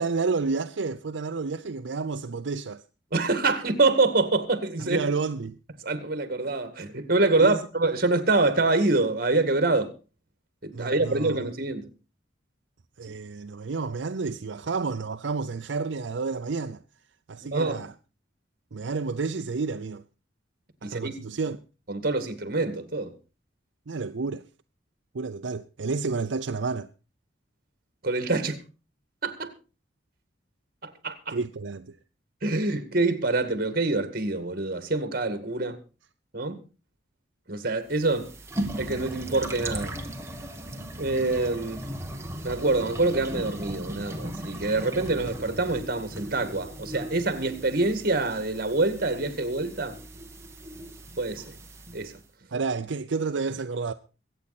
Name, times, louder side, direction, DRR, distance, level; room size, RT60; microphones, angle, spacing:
voice 1, 0.0-2.8 4.8-5.6 7.4-7.6 10.7-11.4 13.0-16.8 17.3-17.9 18.7-20.0 20.8-21.6 23.9-24.4 25.1-26.9 31.3-32.0 52.5-53.9, right 4 dB, 80° right, 0.6 m, -30 dB
voice 2, 3.1-5.0 5.8-9.9 10.6-11.9 17.5-17.8 20.8-21.1 21.9-23.1 28.0-28.6 29.2-29.5 30.8-31.4 32.4-35.8 36.3-36.6 37.5-38.3 38.8-39.9 41.0-41.9 42.4-50.0 51.2-51.5 51.9-52.1, right 2 dB, 50° right, 2.0 m, -25 dB
sound 1, 37.9-52.2, right 1 dB, 15° right, 1.6 m, -38 dB
23.0 x 8.7 x 4.2 m
head